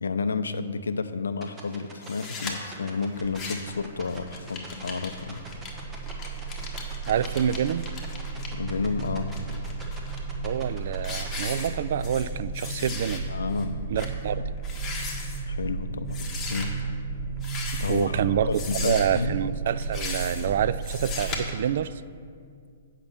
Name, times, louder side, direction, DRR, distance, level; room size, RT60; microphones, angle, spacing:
voice 1, 0.0-5.4 8.5-9.3 13.3-13.9 14.3-14.4 15.5-16.7 17.8-18.2 18.5-19.4, left 4 dB, 75° left, 12 dB, 0.5 m, -31 dB
sound 1, 1.4-11.6, right 3 dB, 20° right, 1.5 m, -44 dB
sound 2, 2.0-2.5 3.2-3.8 4.1-8.5 9.0-10.2 10.6-10.8 11.0-12.3 12.5-13.2 13.6-13.7 14.0-14.1 14.6-15.4 16.1-16.7 17.4-18.1 18.5-19.2 19.8-20.5 20.8-21.4, left 4 dB, 20° left, 1.5 m, -37 dB
sound 3, 3.7-21.4, right 4 dB, 40° right, 1.2 m, -34 dB
voice 2, 7.1-7.9 10.4-13.3 13.9-14.5 17.9-22.0, right 9 dB, 55° right, 15 dB, 0.3 m, -27 dB
8.7 x 5.7 x 6.7 m, 2.2 s
figure-of-eight pair, 120°, 0 cm